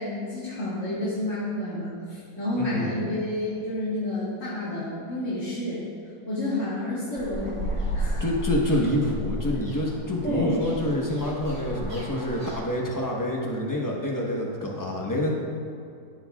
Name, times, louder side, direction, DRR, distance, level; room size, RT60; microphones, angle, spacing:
voice 1, 0.0-5.8 6.3-8.3 10.2-10.6, left 1 dB, 50° left, -10 dB, 1.9 m, -30 dB
voice 2, 2.6-2.9 7.9-15.3, left 1 dB, 15° left, -2 dB, 0.8 m, -27 dB
sound 1, 7.2-12.6, equal, 80° right, 2.6 m, -33 dB
13.5 x 6.4 x 2.3 m, 2.4 s
omnidirectional pair, 1.7 m